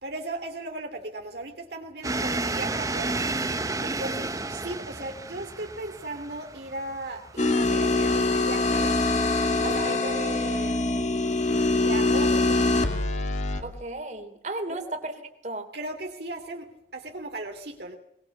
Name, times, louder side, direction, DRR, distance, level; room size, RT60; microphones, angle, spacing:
voice 1, 0.0-3.4 3.8-9.0 9.6-10.9 11.8-12.7 14.7-14.8 15.7-18.0, right 2 dB, 65° right, 3 dB, 2.7 m, -37 dB
sound 1, 2.0-8.5, right 2 dB, 20° right, 1.0 m, -32 dB
sound 2, 7.4-13.6, left 2 dB, 40° left, 2.3 m, -24 dB
voice 2, 9.6-10.0 13.6-15.1 15.4-15.7, right 2 dB, 40° right, 5 dB, 3.1 m, -34 dB
22.0 x 21.0 x 7.2 m, 0.77 s
head